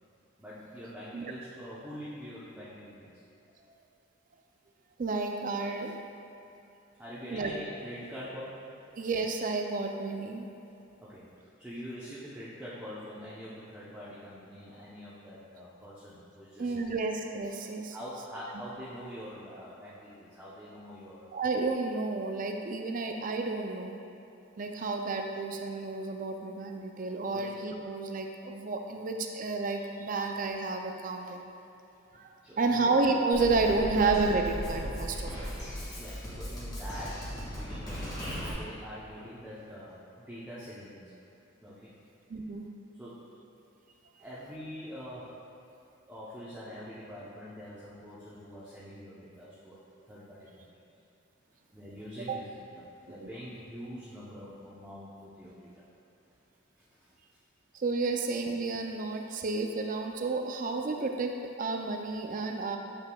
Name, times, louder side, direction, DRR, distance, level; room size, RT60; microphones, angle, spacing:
voice 1, 0.4-3.1 7.0-8.5 11.0-16.9 17.9-21.3 27.3-27.5 32.1-32.9 36.0-41.0 41.6-41.9 43.0-43.2 44.2-45.3 46.1-49.8 50.1-50.7 51.7-55.9 56.8-56.9, equal, 5° right, -10 dB, 0.7 m, -45 dB
voice 2, 5.0-6.0 7.3-7.5 9.0-10.5 16.6-18.0 21.3-24.0 24.6-31.5 32.1-35.5 42.3-42.7 52.2-52.4 53.2-53.3 57.7-62.8, right 3 dB, 40° right, 3 dB, 0.4 m, -31 dB
Drum kit, 33.3-38.5, equal, 20° left, 1.5 m, -37 dB
7.8 x 5.7 x 2.3 m, 2.9 s
head